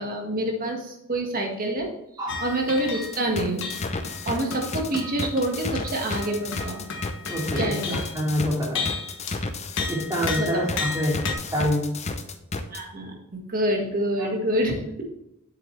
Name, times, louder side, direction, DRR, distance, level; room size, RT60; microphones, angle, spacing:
voice 1, 0.0-1.9 2.4-3.7 4.2-6.9 7.5-8.0 10.4-10.6 12.7-15.0, right 1 dB, 40° right, 2 dB, 1.6 m, -27 dB
sound 1, 2.3-3.3 3.6-8.3 8.8-9.5 9.8-11.3, left 4 dB, 60° left, 1.3 m, -34 dB
sound 2, 3.0-12.8, left 3 dB, 30° left, 0.7 m, -32 dB
voice 2, 7.2-8.9 9.9-11.2 11.5-11.9 14.2-14.3, equal, 15° right, -3 dB, 2.6 m, -26 dB
7.5 x 7.2 x 3.2 m, 0.85 s
head